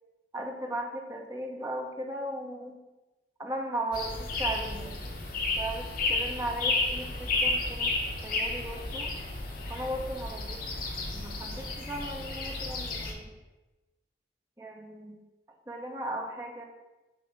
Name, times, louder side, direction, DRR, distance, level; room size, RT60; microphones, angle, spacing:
voice 1, 0.3-2.8 3.4-5.0 5.6-8.0 8.2-9.1 9.7-10.6 11.1-13.3 14.6-15.2 15.7-16.6, right 1 dB, 20° right, 1 dB, 0.8 m, -37 dB
sound 1, 3.9-13.1, left 3 dB, 50° left, 1.1 m, -32 dB
7.4 x 2.9 x 5.8 m, 1.1 s
head